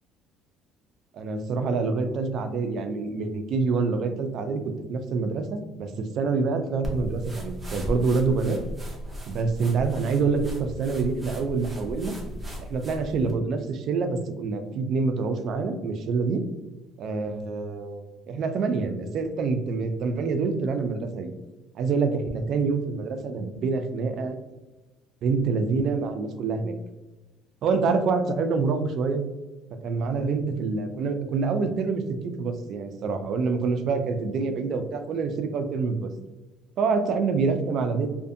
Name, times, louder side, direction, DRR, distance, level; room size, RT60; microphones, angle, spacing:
voice 1, 1.1-4.6 4.9-8.6 9.3-12.1 12.6-16.4 17.0-21.3 21.7-24.4 25.2-26.7 27.6-29.2 29.8-36.1 36.8-38.1, right 4 dB, 55° right, 8 dB, 0.3 m, -26 dB
sound 1, 6.8-13.3, equal, 10° right, 0.6 m, -36 dB
2.5 x 2.5 x 2.5 m, 1.1 s
cardioid pair, 125°, 0 cm